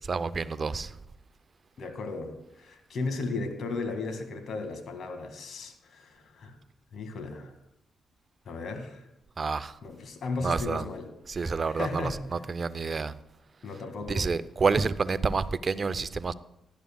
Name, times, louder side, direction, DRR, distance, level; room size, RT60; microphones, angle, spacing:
voice 1, 0.1-0.9 9.4-9.7 10.4-10.8 11.3-12.1 12.5-13.1 14.1-16.3, right 4 dB, 45° right, 0.7 m, -28 dB
voice 2, 1.8-6.6 6.9-7.5 8.5-9.0 9.8-11.1 11.7-12.4 13.6-14.3, left 3 dB, 60° left, 2.1 m, -35 dB
18.0 x 11.5 x 2.3 m
hypercardioid pair, 45°, 0 cm